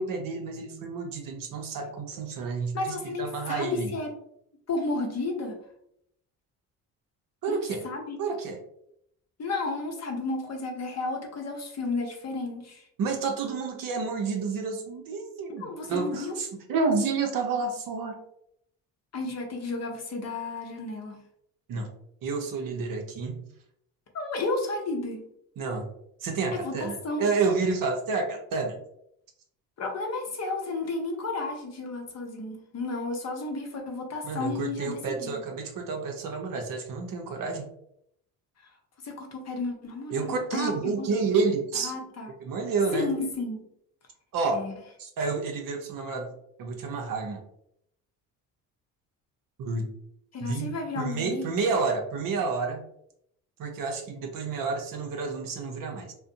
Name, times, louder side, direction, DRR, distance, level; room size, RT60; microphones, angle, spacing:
voice 1, 0.0-3.9 7.4-7.8 8.2-8.6 13.0-18.2 21.7-21.9 22.2-23.4 25.6-25.9 26.2-28.7 34.2-37.7 40.1-41.9 42.4-43.1 44.3-44.6 45.0-46.3 46.6-47.4 49.6-49.9 50.4-52.8 53.6-56.1, right 4 dB, 55° right, 2 dB, 0.7 m, -30 dB
voice 2, 2.7-4.1 4.7-5.6 7.5-8.2 9.4-12.8 15.6-16.4 19.1-21.2 24.1-25.3 26.6-27.3 29.8-35.4 39.0-41.2 41.8-42.3 42.9-43.6 44.5-44.7 50.3-51.5, left 3 dB, 40° left, 2 dB, 0.7 m, -32 dB
2.5 x 2.1 x 2.5 m, 0.73 s
hypercardioid pair, 60°, 41 cm